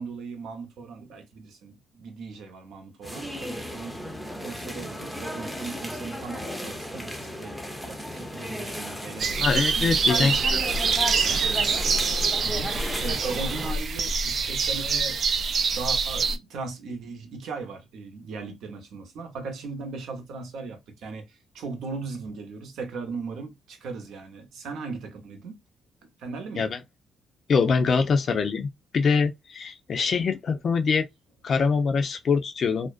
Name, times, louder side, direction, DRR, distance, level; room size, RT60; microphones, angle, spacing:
voice 1, 0.0-4.0 4.4-7.6 7.8-9.3 9.8-11.5 12.4-15.2 15.7-25.6 26.2-26.8, right 4 dB, 80° right, 0.7 m, -38 dB
sound 1, 3.0-13.7, equal, 5° left, 0.5 m, -35 dB
sound 2, 9.2-16.4, right 5 dB, 55° right, 0.3 m, -25 dB
voice 2, 9.4-10.3 26.6-26.8 27.5-31.1 31.4-32.9, left 5 dB, 50° left, 0.5 m, -24 dB
2.5 x 2.1 x 2.4 m
cardioid pair, 90°, 0 cm